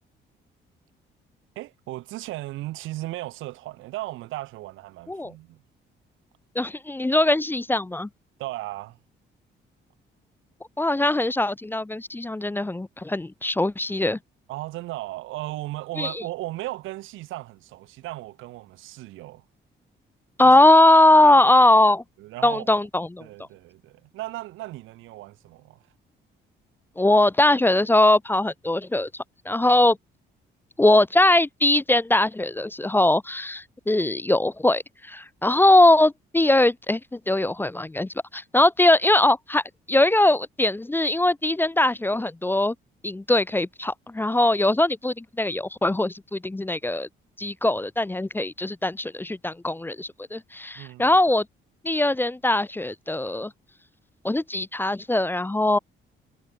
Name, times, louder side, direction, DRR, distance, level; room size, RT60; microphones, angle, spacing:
voice 1, 1.6-5.6 8.4-9.0 14.5-19.4 21.2-21.4 22.2-22.8 23.2-25.8 50.8-51.2, right 17 dB, 85° right, 0.6 m, -36 dB
voice 2, 6.6-8.1 10.8-14.2 16.0-16.2 20.4-22.0 22.4-23.3 27.0-29.1 29.5-30.0 30.8-39.6 39.9-42.7 43.0-47.1 47.4-51.5 51.8-53.5 54.2-55.8, left 1 dB, 10° left, 0.5 m, -21 dB
cardioid pair, 90°, 20 cm